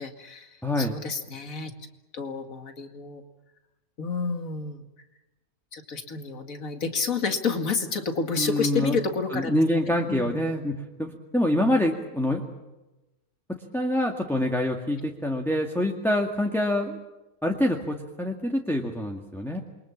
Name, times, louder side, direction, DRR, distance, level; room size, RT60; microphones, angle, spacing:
voice 1, 0.0-1.7 2.1-3.2 4.0-4.8 5.7-9.5 10.1-10.4, left 4 dB, 65° left, 6 dB, 2.6 m, -30 dB
voice 2, 0.6-1.0 8.4-9.0 9.3-12.5 13.7-17.0 17.4-19.6, left 1 dB, ahead, 1 dB, 2.0 m, -26 dB
28.0 x 23.5 x 7.3 m, 1.0 s
omnidirectional pair, 1.6 m